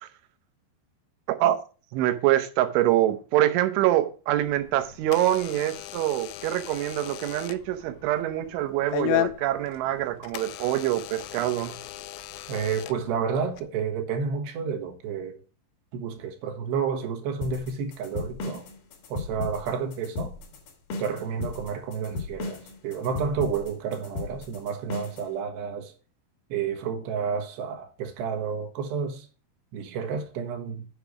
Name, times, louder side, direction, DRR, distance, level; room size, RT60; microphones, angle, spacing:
voice 1, 1.9-11.8, right 14 dB, 90° right, 3.4 m, -25 dB
Door / Alarm, 4.4-13.6, left 15 dB, 85° left, 2.9 m, -35 dB
voice 2, 12.5-15.4 15.9-18.7 19.1-20.3 21.0-25.9 26.5-29.3 29.7-30.9, right 6 dB, 70° right, 3.3 m, -30 dB
sound 1, 17.4-25.3, left 3 dB, 60° left, 3.1 m, -36 dB
8.0 x 5.7 x 6.1 m
omnidirectional pair, 5.3 m